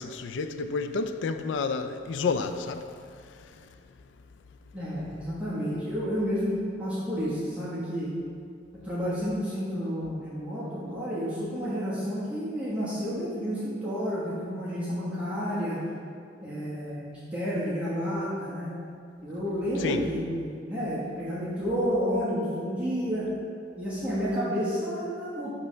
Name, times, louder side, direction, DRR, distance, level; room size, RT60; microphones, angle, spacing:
voice 1, 0.0-2.9 3.3-3.7 19.8-20.1, left 4 dB, 80° left, 0.3 m, -30 dB
voice 2, 4.7-8.1 8.8-15.8 16.4-18.7 19.2-23.3 23.8-25.5, equal, 5° right, 1.1 m, -30 dB
5.5 x 3.3 x 5.2 m
head